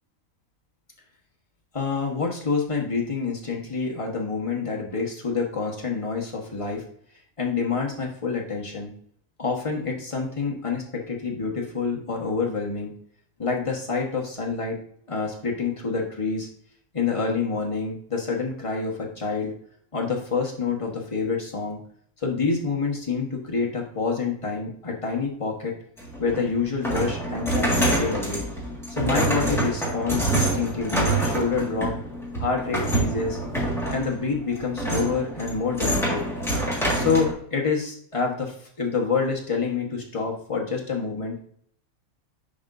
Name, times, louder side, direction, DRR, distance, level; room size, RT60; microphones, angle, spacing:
voice 1, 1.7-6.8 7.4-8.9 9.4-12.9 13.4-14.8 15.1-16.5 16.9-19.5 19.9-21.8 22.2-25.7 26.2-28.4 28.9-32.0 32.4-33.4 33.9-36.2 36.9-41.4, left 4 dB, 25° left, -1 dB, 1.3 m, -27 dB
sound 1, 26.0-37.3, right 1 dB, ahead, 1.8 m, -26 dB
10.0 x 4.4 x 2.7 m, 0.64 s
omnidirectional pair, 1.4 m